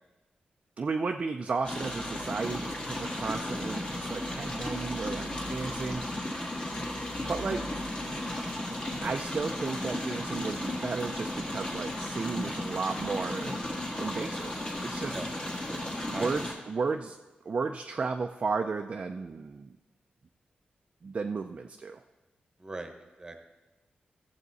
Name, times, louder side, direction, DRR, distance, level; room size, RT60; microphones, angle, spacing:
voice 1, 0.8-6.0 7.3-7.6 9.0-13.6 14.0-15.2 16.1-17.2 17.4-19.7 21.0-22.0, right 4 dB, 40° right, 5 dB, 0.4 m, -33 dB
sound 1, 1.6-16.5, left 1 dB, 30° left, 1.7 m, -35 dB
voice 2, 15.0-15.3 15.7-16.5 22.6-22.9 23.2-23.4, right 2 dB, 20° right, 6 dB, 1.0 m, -42 dB
15.0 x 7.2 x 4.1 m, 1.1 s
wide cardioid pair, 160°, 3 cm